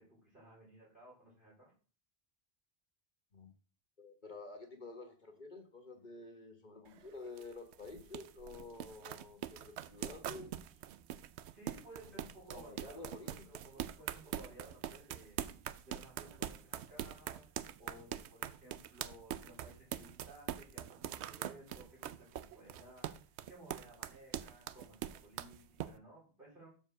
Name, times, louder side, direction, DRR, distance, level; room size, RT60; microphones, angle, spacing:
voice 1, 0.0-1.7 11.5-15.4 15.8-17.5 17.8-26.7, right 1 dB, 55° right, -7 dB, 4.4 m, -57 dB
voice 2, 4.0-10.8 11.9-13.6, left 3 dB, 45° left, 4 dB, 1.4 m, -51 dB
sound 1, 6.9-25.9, right 11 dB, 85° right, 0.8 m, -43 dB
7.4 x 4.6 x 6.4 m, 0.40 s
omnidirectional pair, 1.1 m